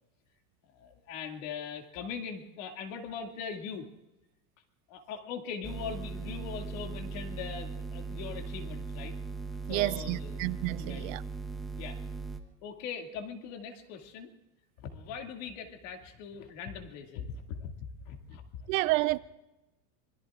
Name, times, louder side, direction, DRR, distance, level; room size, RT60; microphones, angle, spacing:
voice 1, 0.7-3.9 4.9-9.2 9.7-10.4 10.8-11.1 11.8-12.0 12.6-14.3 14.8-17.8 18.0-18.7, left 6 dB, 60° left, 2.4 m, -41 dB
sound 1, 5.6-12.4, right 4 dB, ahead, 0.8 m, -39 dB
voice 2, 9.7-11.2 18.7-19.2, right 19 dB, 65° right, 0.6 m, -30 dB
26.0 x 21.5 x 2.5 m
supercardioid pair, 160°, 44 cm